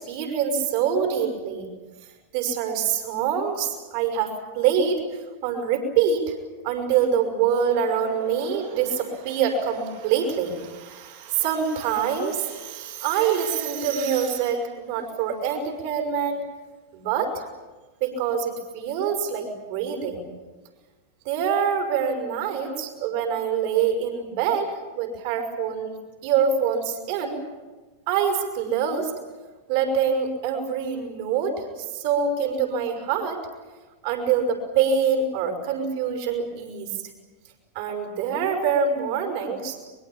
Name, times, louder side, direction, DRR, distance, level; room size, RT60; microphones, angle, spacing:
voice 1, 0.0-1.7 2.3-5.1 5.4-6.4 6.6-16.4 16.9-17.4 18.0-20.3 21.2-26.0 26.2-27.4 28.1-29.1 29.7-33.5 34.0-36.9 37.7-39.8, right 7 dB, 50° right, 5 dB, 6.0 m, -25 dB
23.5 x 22.5 x 8.8 m, 1.3 s
figure-of-eight pair, 90°, 0 cm